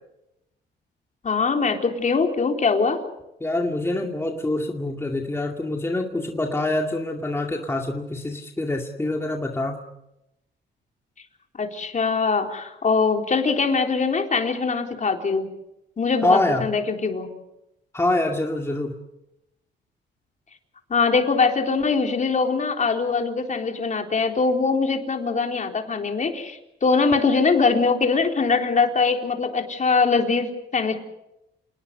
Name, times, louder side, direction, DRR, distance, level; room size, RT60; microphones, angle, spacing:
voice 1, 1.2-3.0 11.6-15.5 16.0-17.3 20.9-31.0, left 4 dB, 40° left, 3 dB, 3.9 m, -22 dB
voice 2, 3.4-9.8 16.2-16.7 17.9-18.9, left 2 dB, 15° left, 2 dB, 2.3 m, -25 dB
28.5 x 19.5 x 6.8 m, 0.88 s
cardioid pair, 90°, 20 cm